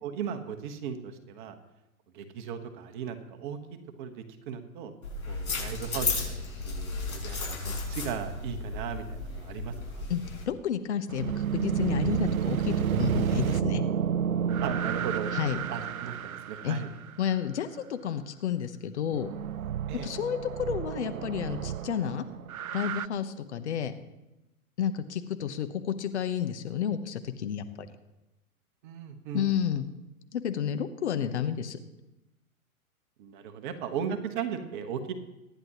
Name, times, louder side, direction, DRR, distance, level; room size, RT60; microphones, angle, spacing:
voice 1, 0.0-1.6 2.1-4.9 5.3-6.3 6.6-10.1 14.6-16.9 19.9-20.1 28.8-29.5 33.2-35.1, right 7 dB, 35° right, 7 dB, 1.4 m, -37 dB
sound 1, 5.0-10.4, left 3 dB, 70° left, 6.2 m, -34 dB
voice 2, 10.1-13.8 15.3-15.6 16.6-16.8 17.2-19.3 20.0-22.2 22.7-23.9 24.8-27.9 29.3-29.8 30.3-31.8, left 8 dB, 50° left, 9 dB, 1.1 m, -31 dB
sound 2, 11.1-17.1 19.1-23.1, right 8 dB, 75° right, 0.5 m, -30 dB
24.0 x 10.5 x 3.0 m, 0.99 s
figure-of-eight pair, 115°, 44 cm